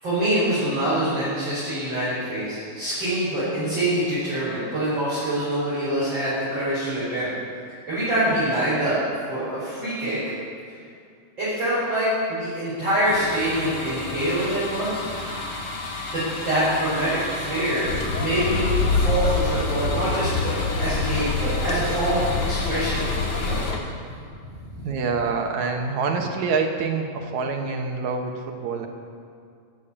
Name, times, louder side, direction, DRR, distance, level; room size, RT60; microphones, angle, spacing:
voice 1, 0.0-7.3 7.9-9.0 9.3-10.3 11.4-15.6 16.1-23.6, right 1 dB, 35° right, -13 dB, 5.8 m, -25 dB
sound 1, 13.0-23.7, left 2 dB, 75° left, 4.9 m, -33 dB
sound 2, 17.8-23.8, left 4 dB, 55° left, 1.8 m, -25 dB
voice 2, 24.8-28.9, right 4 dB, 70° right, 3 dB, 2.4 m, -26 dB
16.0 x 8.4 x 8.6 m, 2.3 s
omnidirectional pair, 3.6 m